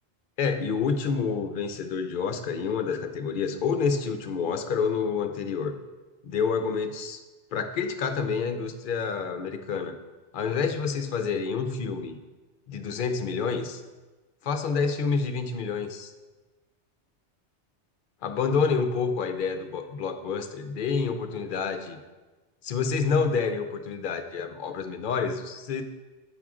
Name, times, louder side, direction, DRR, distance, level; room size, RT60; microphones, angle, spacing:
voice 1, 0.4-5.7 6.2-7.2 7.5-10.0 10.3-12.2 12.7-13.8 14.4-16.1 18.2-22.0 22.6-25.8, left 5 dB, 55° left, 7 dB, 0.7 m, -28 dB
8.7 x 6.0 x 3.6 m, 1.2 s
omnidirectional pair, 1.2 m